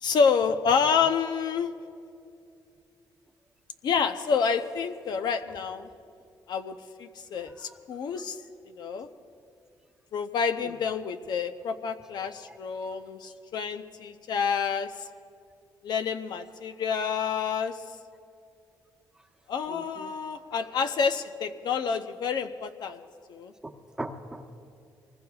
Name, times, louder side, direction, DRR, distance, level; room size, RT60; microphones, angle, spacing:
voice 1, 0.0-1.7 3.8-5.9 6.5-8.4 8.7-9.1 10.1-15.1 15.8-17.8 19.5-23.0 23.3-23.5, left 6 dB, 65° left, 8 dB, 0.7 m, -28 dB
voice 2, 19.7-20.1 20.5-20.6 23.6-23.7 24.0-24.7, right 1 dB, 10° right, 4 dB, 1.0 m, -40 dB
25.0 x 20.0 x 2.4 m, 2.4 s
cardioid pair, 100°, 8 cm